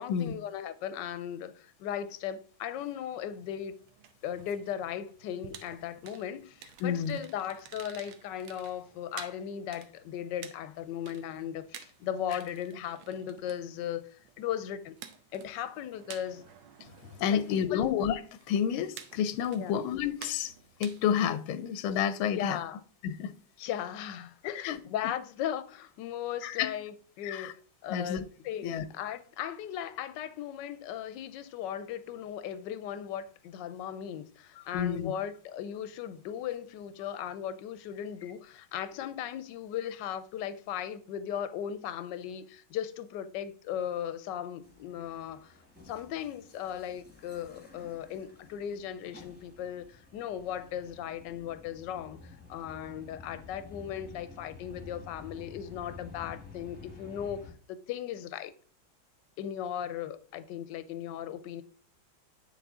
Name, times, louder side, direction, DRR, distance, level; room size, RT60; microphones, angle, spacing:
voice 1, 0.0-3.8 4.2-14.1 14.4-14.9 15.3-16.4 17.3-17.8 19.6-19.7 22.3-22.8 23.6-45.5 45.9-52.2 52.5-58.5 59.4-61.6, left 10 dB, 75° left, 1.1 m, -37 dB
sound 1, 3.3-21.4, right 9 dB, 90° right, 1.5 m, -52 dB
voice 2, 6.8-7.2 16.8-16.9 17.2-18.2 18.5-20.5 20.8-22.6 23.0-23.3 24.4-24.8 26.4-26.7 27.2-27.5 27.9-28.2 28.6-28.8 34.6-35.1, left 8 dB, 90° left, 1.4 m, -30 dB
sound 2, 44.6-57.5, left 4 dB, 5° left, 1.0 m, -51 dB
9.3 x 3.8 x 3.6 m
omnidirectional pair, 2.2 m